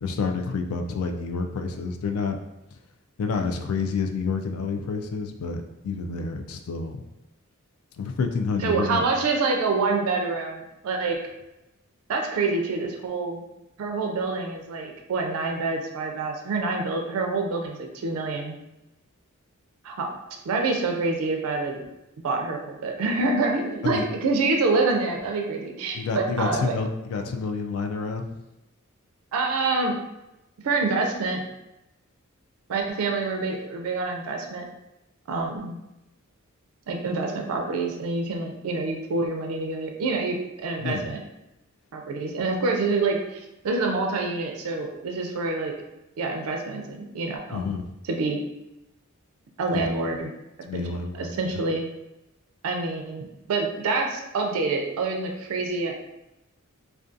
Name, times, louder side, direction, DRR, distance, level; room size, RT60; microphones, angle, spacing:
voice 1, 0.0-2.4 3.2-7.0 8.0-9.0 23.8-24.0 25.9-28.3 40.8-41.0 47.5-47.9 49.7-49.9 50.7-51.3, left 4 dB, 75° left, 5 dB, 0.3 m, -29 dB
voice 2, 8.6-11.2 12.1-13.4 13.8-18.6 19.8-20.1 20.5-21.8 22.2-26.8 29.3-30.0 30.6-31.4 32.7-34.6 35.3-35.8 36.9-41.2 41.9-45.7 46.2-47.7 48.0-48.5 49.6-50.3 50.7-50.8 51.2-51.9 52.6-56.1, right 3 dB, 80° right, 2 dB, 0.4 m, -26 dB
2.4 x 2.3 x 2.5 m, 0.91 s
head